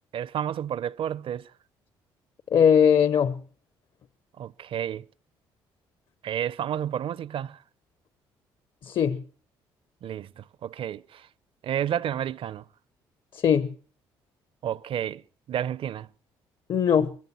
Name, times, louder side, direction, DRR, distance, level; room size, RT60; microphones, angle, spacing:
voice 1, 0.1-1.5 4.4-5.1 6.2-7.6 10.0-11.3 11.6-12.7 14.6-15.2 15.5-16.1, right 10 dB, 60° right, 0.7 m, -31 dB
voice 2, 2.5-3.4 8.8-9.2 13.3-13.7 16.7-17.2, left 8 dB, 55° left, 0.9 m, -20 dB
21.0 x 16.0 x 4.3 m
supercardioid pair, 65°, 10 cm